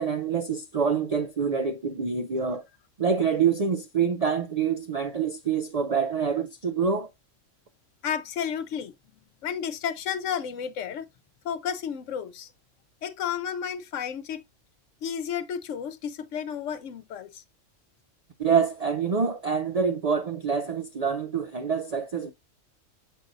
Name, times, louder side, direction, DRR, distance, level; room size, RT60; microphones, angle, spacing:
voice 1, 0.0-2.6 3.0-7.1 18.4-22.3, right 6 dB, 60° right, 0.4 m, -26 dB
voice 2, 8.0-8.9 9.4-11.1 11.4-12.5 13.0-14.4 15.0-17.4, left 8 dB, 80° left, 1.0 m, -32 dB
7.3 x 5.0 x 2.6 m
omnidirectional pair, 1.3 m